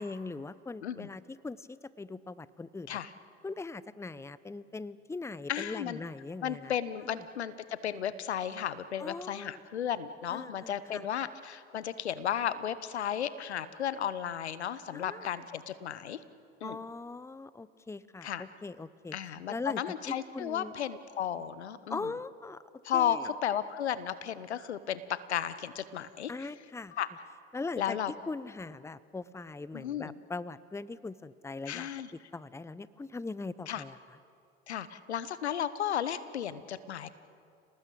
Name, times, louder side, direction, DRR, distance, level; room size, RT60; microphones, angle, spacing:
voice 1, 0.0-3.0 3.4-6.8 7.0-7.2 9.0-9.6 10.3-11.1 14.9-15.4 16.6-19.2 19.5-20.7 21.9-22.6 22.9-23.3 26.3-26.9 27.5-28.0 28.3-31.9 32.3-34.0, left 3 dB, 10° left, 18 dB, 0.8 m, -40 dB
voice 2, 5.5-6.0 6.4-16.2 16.6-16.8 18.2-18.4 19.1-22.0 22.8-26.3 27.0-27.1 27.8-28.1 29.7-30.1 31.7-32.1 33.7-33.8 34.7-37.1, left 9 dB, 85° left, 15 dB, 1.0 m, -34 dB
29.5 x 19.0 x 8.6 m, 2.5 s
hypercardioid pair, 70°, 32 cm